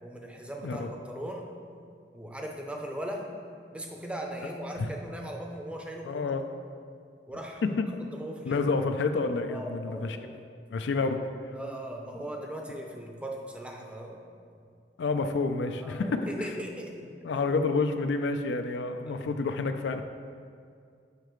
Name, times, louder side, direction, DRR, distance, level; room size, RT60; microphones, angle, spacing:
voice 1, 0.0-1.5 2.1-3.3 3.7-6.2 7.3-7.6 8.1-8.6 9.5-10.5 11.5-14.2 15.8-17.1 19.1-19.2, right 1 dB, 5° right, 1 dB, 0.5 m, -39 dB
voice 2, 6.1-6.4 7.6-8.0 8.4-10.2 10.7-11.2 15.0-16.3 17.2-20.0, left 3 dB, 85° left, 7 dB, 0.4 m, -29 dB
6.6 x 5.7 x 3.1 m, 2.3 s
head